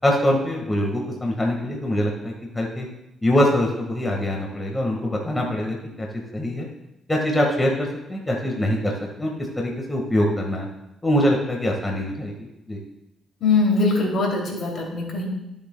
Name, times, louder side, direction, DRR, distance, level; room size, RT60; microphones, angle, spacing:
voice 1, 0.0-2.9 3.2-6.1 6.3-6.7 7.1-10.7 11.0-12.3 12.7-12.8, left 1 dB, 15° left, -1 dB, 1.6 m, -23 dB
voice 2, 13.4-15.3, left 3 dB, 60° left, -1 dB, 2.7 m, -21 dB
14.5 x 7.1 x 2.3 m, 0.91 s
cardioid pair, 90°, 0 cm